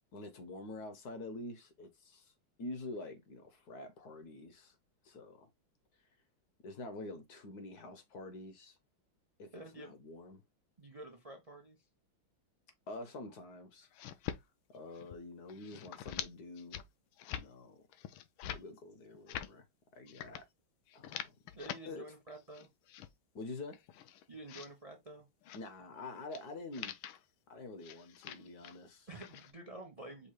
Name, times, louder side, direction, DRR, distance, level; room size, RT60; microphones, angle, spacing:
voice 1, 0.1-2.3 2.6-4.8 5.0-5.5 6.6-8.8 9.4-10.4 12.9-13.9 14.4-16.8 17.3-17.8 18.4-19.7 19.9-20.4 20.9-21.3 21.9-22.0 23.3-23.8 25.5-26.9 27.5-29.1, left 2 dB, 60° left, 1.1 m, -47 dB
voice 2, 9.5-9.9 10.8-11.8 21.5-22.7 24.3-25.3 29.1-30.3, right 2 dB, 70° right, 0.3 m, -49 dB
sound 1, 13.8-14.4 14.8-15.2 15.5-16.3 16.6-16.9 17.2-17.5 17.9-18.6 19.1-19.5 20.1-20.4 20.9-21.8 22.3-23.1 23.6-24.7 25.4-25.6 26.3-26.4 26.7-27.2 27.8-28.8 29.1-29.5, left 11 dB, 80° left, 1.4 m, -45 dB
5.5 x 2.0 x 4.7 m
omnidirectional pair, 2.3 m